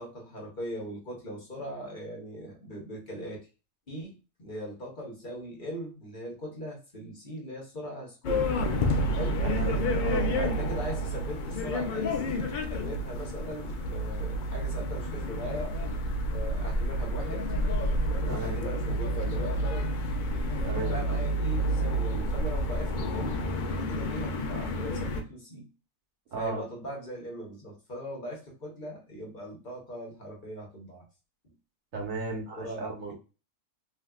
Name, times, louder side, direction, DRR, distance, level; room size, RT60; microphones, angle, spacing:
voice 1, 0.0-3.4 3.9-8.5 9.1-9.4 10.3-15.7 16.3-17.5 18.1-20.0 20.7-23.4 23.7-25.7 26.3-31.0 32.6-33.1, equal, 40° left, -1 dB, 1.0 m, -40 dB
sound 1, 8.2-25.2, equal, 60° left, 0.5 m, -29 dB
voice 2, 9.4-10.3 18.3-18.6 20.6-21.0 26.3-26.6 31.9-33.1, right 3 dB, 75° right, 0 dB, 1.4 m, -35 dB
3.4 x 2.7 x 2.3 m, 0.31 s
omnidirectional pair, 1.4 m